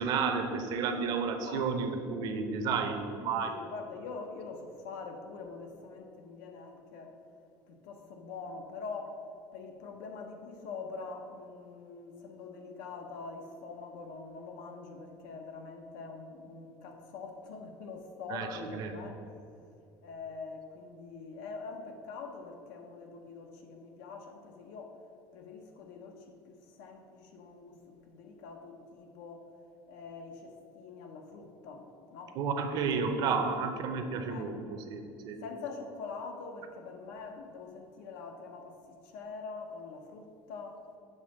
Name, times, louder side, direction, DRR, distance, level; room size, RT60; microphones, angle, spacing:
voice 1, 0.0-3.5 18.3-18.9 32.4-34.6 34.9-35.4, right 5 dB, 45° right, 6 dB, 0.6 m, -31 dB
voice 2, 3.1-7.2 7.7-9.2 9.5-19.2 20.0-25.0 25.3-29.5 29.9-32.4 33.2-33.6 34.3-34.6 35.4-38.8 39.0-40.8, left 4 dB, 80° left, 4 dB, 0.9 m, -44 dB
6.6 x 3.7 x 6.1 m, 2.6 s
cardioid pair, 180°, 10 cm